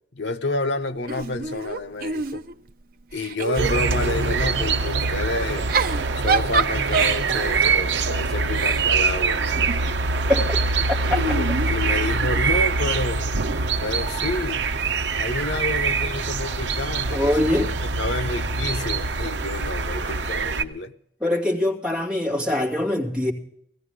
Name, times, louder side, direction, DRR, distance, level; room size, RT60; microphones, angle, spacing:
voice 1, 0.1-2.4 3.1-5.7 6.1-9.4 11.2-13.3 13.8-14.6 15.2-17.4 17.9-20.9, left 2 dB, 80° left, 0.8 m, -29 dB
Giggle / Chuckle chortle, 1.1-2.7 3.1-4.5 5.5-10.0 11.0-12.4, right 4 dB, 55° right, 0.7 m, -27 dB
sound 1, 3.6-20.6, right 4 dB, 85° right, 0.8 m, -24 dB
sound 2, 13.0-13.3 14.0-14.4 15.4-15.7 16.5-16.7 18.0-18.2 18.8-19.1 19.6-19.9 20.3-20.7, left 1 dB, 30° left, 3.3 m, -46 dB
voice 2, 17.1-17.7 21.2-23.3, left 1 dB, 5° right, 2.6 m, -22 dB
18.0 x 14.5 x 3.7 m
head